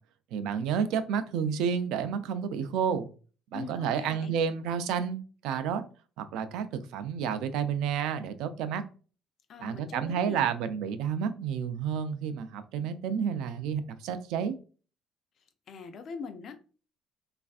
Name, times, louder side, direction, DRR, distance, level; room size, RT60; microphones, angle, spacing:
voice 1, 0.3-3.1 3.5-5.2 5.4-5.8 6.2-8.8 9.6-14.6, right 7 dB, 85° right, 11 dB, 0.4 m, -30 dB
voice 2, 3.5-4.4 9.5-10.4 15.7-16.6, left 5 dB, 40° left, 8 dB, 0.4 m, -42 dB
3.3 x 2.4 x 2.3 m, 0.37 s
cardioid pair, 170°, 0 cm